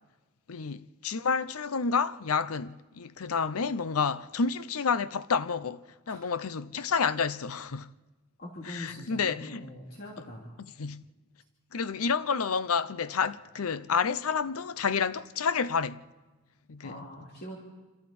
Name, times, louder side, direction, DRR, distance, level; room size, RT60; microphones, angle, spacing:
voice 1, 0.5-7.9 8.6-9.6 10.8-11.0 11.7-16.0 16.7-17.0, left 5 dB, 75° left, 0.6 m, -29 dB
voice 2, 8.4-10.6 16.8-17.6, left 1 dB, 45° left, 2.8 m, -43 dB
27.0 x 26.5 x 4.3 m
head